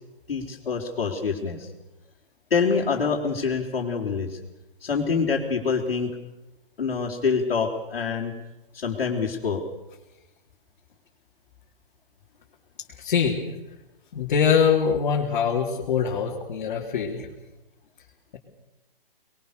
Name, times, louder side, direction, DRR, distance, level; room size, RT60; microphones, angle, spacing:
voice 1, 0.3-1.7 2.5-4.3 4.8-6.1 6.8-8.3 8.7-9.6, left 5 dB, 80° left, -5 dB, 4.4 m, -26 dB
voice 2, 13.0-13.3 14.1-17.3, left 7 dB, 50° left, -3 dB, 4.0 m, -23 dB
24.5 x 22.5 x 6.9 m, 1.0 s
hypercardioid pair, 150°, 29 cm